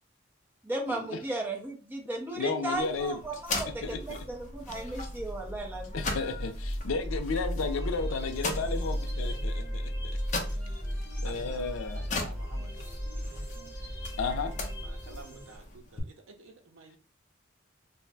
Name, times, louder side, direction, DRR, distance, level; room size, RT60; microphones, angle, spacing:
voice 1, 0.6-6.0, right 2 dB, 10° right, 0.6 m, -35 dB
voice 2, 2.3-3.2 3.8-4.3 5.9-9.8 11.2-12.1 14.2-14.6, left 4 dB, 85° left, 0.4 m, -33 dB
sound 1, 2.7-16.0, left 3 dB, 40° left, 0.5 m, -41 dB
sound 2, 3.5-15.2, equal, 35° right, 1.3 m, -36 dB
sound 3, 7.6-15.6, equal, 15° left, 0.9 m, -48 dB
voice 3, 11.2-11.7 12.0-12.7 14.8-17.0, right 3 dB, 80° right, 0.5 m, -50 dB
2.4 x 2.1 x 3.3 m
head